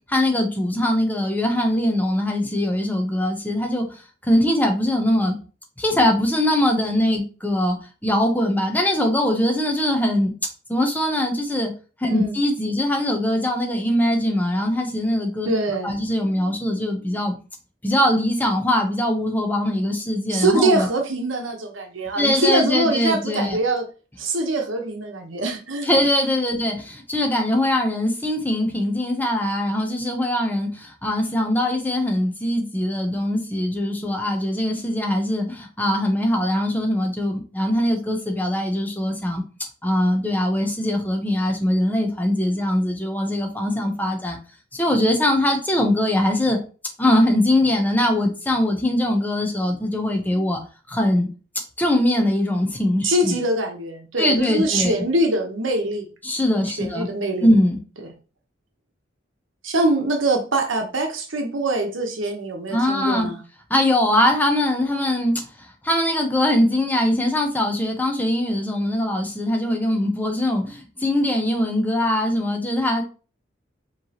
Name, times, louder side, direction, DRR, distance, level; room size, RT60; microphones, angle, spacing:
voice 1, 0.1-5.4 5.8-10.3 10.7-11.7 12.0-15.5 15.8-17.3 17.8-20.9 22.2-23.6 25.8-39.4 39.8-44.4 44.7-46.6 47.0-50.6 50.9-51.3 51.8-53.4 54.2-54.9 56.2-57.1 57.4-57.8 62.7-63.3 63.7-73.0, left 1 dB, 10° left, 0.8 m, -22 dB
voice 2, 15.4-16.0 20.3-23.8 24.2-25.9 53.0-56.1 56.8-57.5 59.6-63.4, right 2 dB, 75° right, 1.0 m, -23 dB
5.1 x 3.2 x 2.9 m
head